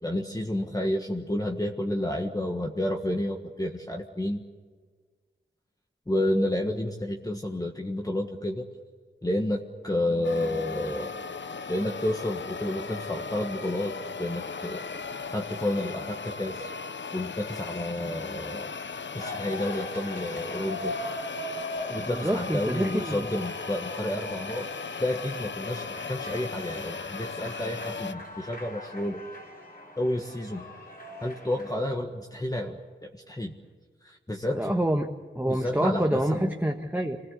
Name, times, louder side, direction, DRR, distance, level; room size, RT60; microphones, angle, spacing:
voice 1, 0.0-4.4 6.1-8.7 9.2-11.2 11.7-14.9 15.3-16.7 17.1-18.7 19.1-20.9 21.9-24.7 25.0-29.2 30.0-30.7 31.2-33.5 34.0-34.8 35.5-36.5, left 1 dB, 20° left, 2 dB, 1.5 m, -30 dB
sound 1, 10.2-28.1, left 5 dB, 70° left, 0.8 m, -37 dB
sound 2, 19.2-31.7, left 1 dB, 50° left, 5.3 m, -40 dB
voice 2, 22.0-23.3 34.5-35.1 35.3-37.2, right 1 dB, 10° right, 3 dB, 1.4 m, -27 dB
27.0 x 20.0 x 8.3 m, 1.5 s
wide cardioid pair, 80°, 20 cm